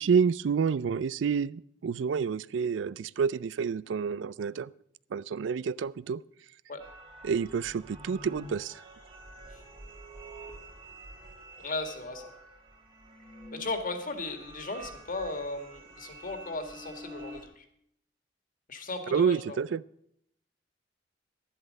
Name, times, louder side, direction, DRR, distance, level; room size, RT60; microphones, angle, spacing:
voice 1, 0.0-4.7 5.1-6.2 7.2-8.7 19.1-19.8, right 6 dB, 80° right, 20 dB, 0.4 m, -28 dB
sound 1, 6.8-17.5, right 1 dB, 30° right, 2.1 m, -48 dB
voice 2, 11.6-12.3 13.5-17.7 18.7-19.6, left 2 dB, 50° left, 6 dB, 1.9 m, -36 dB
11.5 x 11.0 x 5.3 m, 0.70 s
head